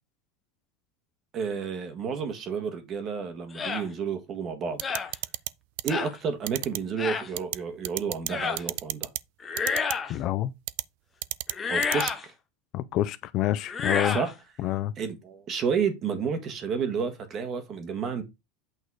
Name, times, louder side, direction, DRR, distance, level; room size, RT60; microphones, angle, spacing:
voice 1, 1.3-4.8 5.8-9.1 11.7-12.3 14.1-14.3 15.0-18.2, right 6 dB, 25° right, 1.7 m, -31 dB
sound 1, 3.5-3.8 4.8-5.1 5.9-6.1 7.0-7.3 8.3-8.6 9.4-10.2 11.5-12.2 13.6-14.3, left 5 dB, 15° left, 1.1 m, -29 dB
sound 2, 4.8-5.5 5.8-5.9 6.5-6.8 7.4-7.6 7.8-8.3 8.6-9.2 9.6-9.9 10.7-10.8 11.2-11.5 11.8-12.1, right 19 dB, 60° right, 0.4 m, -30 dB
voice 2, 10.1-10.5 12.7-14.2 14.6-14.9, left 13 dB, 35° left, 0.5 m, -27 dB
8.6 x 4.3 x 4.8 m
supercardioid pair, 175°, 0 cm